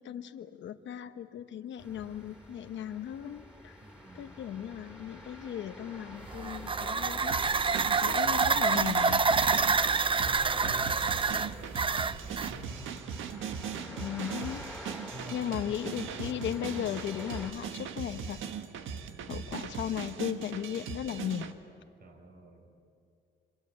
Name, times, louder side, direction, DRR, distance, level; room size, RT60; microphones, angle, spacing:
voice 1, 0.0-3.8 4.1-7.3 8.0-9.3 13.9-14.7 15.3-18.4 19.3-21.6, left 10 dB, 70° left, 8 dB, 1.0 m, -36 dB
sound 1, 1.8-17.5, left 1 dB, 5° right, 4.9 m, -48 dB
voice 2, 3.8-4.3 8.2-8.5 10.2-12.9 15.1-16.6 19.0-19.4 22.0-22.7, right 1 dB, 50° right, 4 dB, 6.1 m, -50 dB
sound 2, 6.3-12.5, right 4 dB, 25° right, 0.6 m, -27 dB
sound 3, 7.3-21.5, right 7 dB, 80° right, 1.5 m, -40 dB
26.5 x 26.0 x 8.6 m, 2.4 s
cardioid pair, 90°, 20 cm